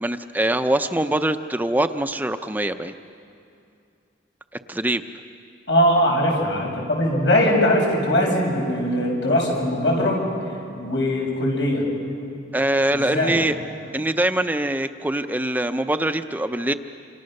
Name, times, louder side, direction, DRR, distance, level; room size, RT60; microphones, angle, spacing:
voice 1, 0.0-2.9 4.7-5.0 12.5-13.6 13.9-16.7, right 1 dB, 10° right, 9 dB, 0.6 m, -23 dB
voice 2, 5.7-10.2 10.8-11.9 12.9-13.4, left 1 dB, 75° left, 0 dB, 7.0 m, -21 dB
27.5 x 27.5 x 6.6 m, 2.5 s
head